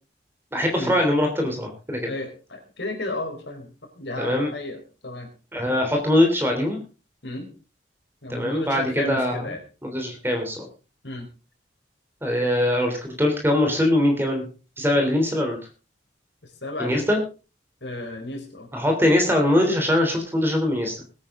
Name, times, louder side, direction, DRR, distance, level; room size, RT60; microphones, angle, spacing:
voice 1, 0.5-2.1 4.2-4.5 5.5-6.8 8.3-9.4 9.8-10.7 12.2-14.4 14.8-15.6 16.8-17.2 18.7-21.0, left 1 dB, 10° right, 3 dB, 3.3 m, -22 dB
voice 2, 2.0-3.7 4.0-5.3 7.2-7.5 8.2-9.6 11.0-11.3 14.9-15.1 16.4-17.1 17.8-18.7, left 2 dB, 70° left, 3 dB, 4.6 m, -33 dB
21.0 x 9.6 x 3.7 m, 0.33 s
head